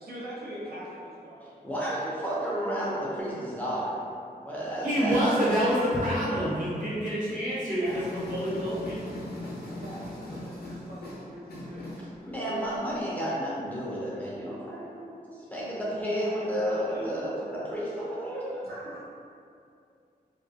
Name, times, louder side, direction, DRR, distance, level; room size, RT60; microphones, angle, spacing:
voice 1, 0.0-1.6 7.7-8.0 9.8-12.0 16.1-16.5 16.9-17.3 18.6-19.0, equal, 75° right, -7 dB, 0.6 m, -42 dB
voice 2, 1.6-4.0 4.4-5.3 12.2-18.6, equal, 10° left, -7 dB, 0.5 m, -32 dB
voice 3, 4.8-9.0, equal, 55° right, -10 dB, 1.1 m, -27 dB
sound 1, 7.8-13.0, left 1 dB, 75° left, 0.5 m, -39 dB
2.3 x 2.2 x 2.7 m, 2.4 s
wide cardioid pair, 90°, 16 cm